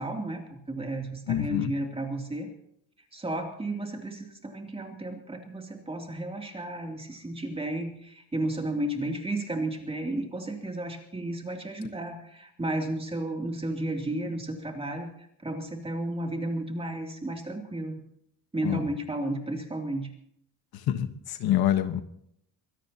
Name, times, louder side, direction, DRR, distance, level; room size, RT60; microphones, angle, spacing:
voice 1, 0.0-2.5 3.1-15.1 15.4-18.0 18.5-20.1, right 1 dB, 15° right, 2 dB, 2.9 m, -33 dB
voice 2, 1.3-1.7 18.6-18.8 20.9-22.0, left 11 dB, 70° left, 9 dB, 1.4 m, -26 dB
24.0 x 17.0 x 2.9 m, 0.72 s
cardioid pair, 130°, 39 cm